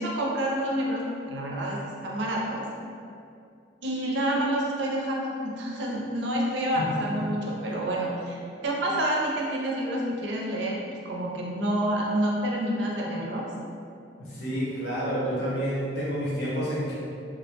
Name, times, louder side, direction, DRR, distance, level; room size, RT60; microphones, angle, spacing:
voice 1, 0.0-2.6 3.8-13.5, right 1 dB, 75° right, -2 dB, 0.4 m, -28 dB
voice 2, 14.2-16.9, equal, 65° left, -7 dB, 0.7 m, -29 dB
2.2 x 2.0 x 2.9 m, 2.4 s
head